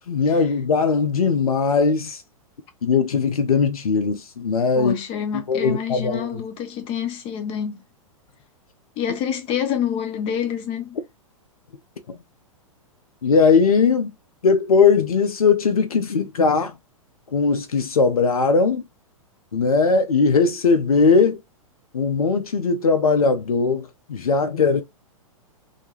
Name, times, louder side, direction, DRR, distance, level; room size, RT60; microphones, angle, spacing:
voice 1, 0.1-2.2 2.8-4.9 5.5-6.3 13.2-14.1 14.4-16.7 17.3-18.8 19.5-21.4 21.9-24.8, left 5 dB, 85° left, 0.5 m, -19 dB
voice 2, 4.7-7.8 9.0-11.0, left 8 dB, 30° left, 0.7 m, -27 dB
2.3 x 2.2 x 3.0 m
figure-of-eight pair, 110°, 18 cm